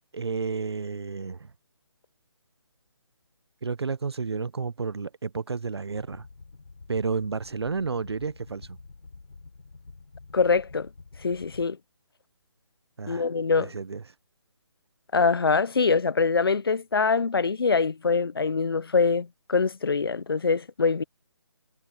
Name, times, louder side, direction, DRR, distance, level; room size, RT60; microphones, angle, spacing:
voice 1, 0.1-1.5 3.6-6.2 6.9-8.8 13.0-13.3 13.6-14.0, right 5 dB, 60° right, 0.8 m, -31 dB
sound 1, 5.9-11.6, left 3 dB, 70° left, 6.9 m, -48 dB
voice 2, 10.3-10.9 11.2-11.8 13.1-13.7 15.1-21.0, left 4 dB, 55° left, 0.8 m, -24 dB
hypercardioid pair, 180°, 15 cm